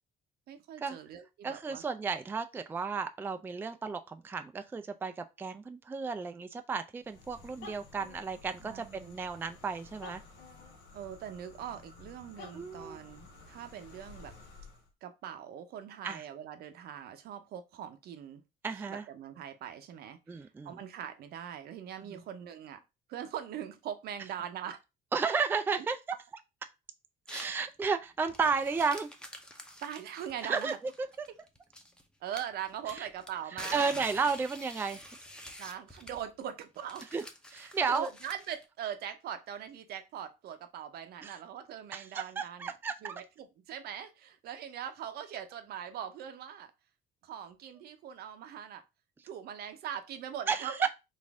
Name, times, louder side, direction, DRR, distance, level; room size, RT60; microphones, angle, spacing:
voice 1, 0.5-1.8 8.6-9.2 10.9-14.3 15.0-18.4 18.9-22.8 23.1-24.8 29.8-30.8 32.2-33.9 35.6-37.1 37.6-42.8 43.0-46.7 47.2-48.8 49.2-50.9, right 9 dB, 70° right, 0.7 m, -41 dB
voice 2, 1.4-10.2 12.5-13.0 16.0-16.2 18.6-19.0 20.3-20.7 22.1-22.2 25.1-26.0 27.3-29.1 30.4-31.3 32.9-33.1 33.7-35.0 37.1-37.2 37.5-38.1 41.2-41.3 41.9-43.2 50.5-50.9, right 5 dB, 15° right, 0.3 m, -33 dB
sound 1, 7.0-14.9, left 3 dB, 90° left, 1.2 m, -52 dB
sound 2, 27.3-27.6 28.2-32.0 32.3-38.6, equal, 5° left, 0.7 m, -47 dB
4.1 x 2.6 x 3.5 m
cardioid pair, 110°, 17 cm